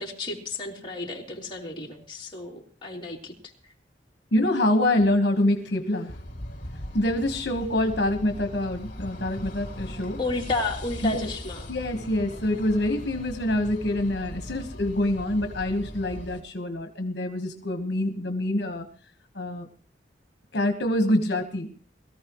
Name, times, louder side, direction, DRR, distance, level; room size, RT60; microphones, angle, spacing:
voice 1, 0.0-3.3 10.2-11.7, left 3 dB, 30° left, -2 dB, 3.3 m, -32 dB
voice 2, 4.3-6.1 6.9-10.2 11.0-11.3 11.7-18.9 19.3-19.7 20.5-21.7, left 1 dB, 70° left, 5 dB, 1.5 m, -25 dB
sound 1, 6.1-16.4, left 1 dB, 45° left, 4.0 m, -39 dB
22.0 x 14.5 x 3.1 m, 0.41 s
head